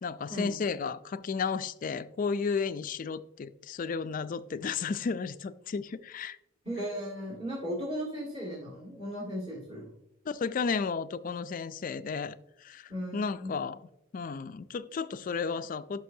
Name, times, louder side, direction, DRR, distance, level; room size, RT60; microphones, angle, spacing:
voice 1, 0.0-6.4 10.3-13.8 14.1-16.0, left 5 dB, 40° left, 13 dB, 0.3 m, -33 dB
voice 2, 6.6-9.9 12.9-13.5, equal, 30° right, -7 dB, 1.9 m, -36 dB
11.0 x 6.0 x 2.7 m, 0.85 s
head